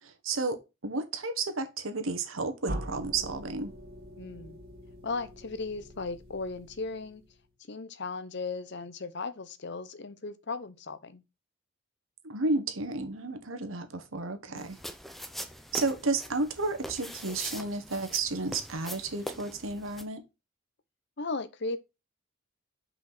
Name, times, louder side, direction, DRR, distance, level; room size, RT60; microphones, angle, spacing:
voice 1, 0.0-3.7 12.2-14.8 15.7-20.2, right 3 dB, 85° right, 1.4 m, -32 dB
sound 1, 2.7-7.5, right 1 dB, 50° right, 2.4 m, -42 dB
voice 2, 4.2-4.6 5.0-7.2 7.7-11.2 14.5-14.7 21.2-21.8, left 3 dB, 60° left, 0.8 m, -36 dB
sound 2, 14.6-20.0, equal, ahead, 0.7 m, -42 dB
6.1 x 5.1 x 5.8 m
head